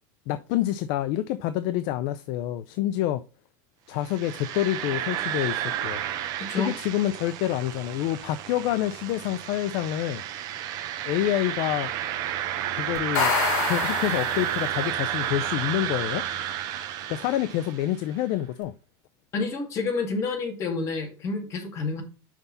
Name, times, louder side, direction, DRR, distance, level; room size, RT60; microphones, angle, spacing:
voice 1, 0.3-3.2 3.9-6.0 6.5-10.2 11.1-11.9 12.7-13.3 13.6-16.2 17.1-18.7, left 13 dB, 50° left, 0.4 m, -27 dB
sound 1, 4.0-18.0, right 11 dB, 40° right, 0.8 m, -31 dB
voice 2, 6.4-6.7 19.3-22.0, left 4 dB, 30° left, 2.0 m, -29 dB
sound 2, 13.0-14.9, left 5 dB, 80° left, 3.0 m, -27 dB
5.9 x 5.5 x 3.9 m
cardioid pair, 170°, 10 cm